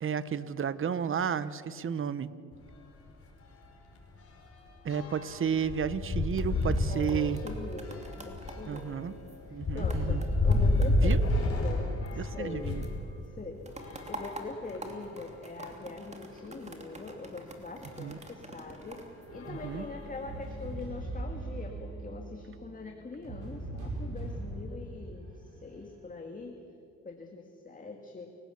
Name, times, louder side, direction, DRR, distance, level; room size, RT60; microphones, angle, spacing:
voice 1, 0.0-2.3 4.8-7.4 8.7-9.1 9.5-10.3 11.0-11.2 12.2-12.8 18.0-18.2 19.5-19.9, right 7 dB, 45° right, 16 dB, 1.0 m, -32 dB
sound 1, 2.5-2.7 3.1-3.2 3.5-13.0 13.7-15.1 15.7-15.8 16.1-16.2 17.9-18.0 18.6-18.8 19.3-20.6, left 2 dB, 50° left, 4.9 m, -31 dB
sound 2, 6.1-12.6 12.8-20.0 20.5-20.8, right 1 dB, 20° right, 2.9 m, -48 dB
voice 2, 6.9-9.1 9.5-10.2 10.4-12.7 13.4-26.5 27.0-28.3, left 3 dB, 25° left, 3 dB, 2.1 m, -42 dB
sound 3, 19.3-26.0, right 2 dB, 90° right, 5.6 m, -41 dB
29.0 x 17.0 x 7.1 m, 2.5 s
cardioid pair, 90°, 30 cm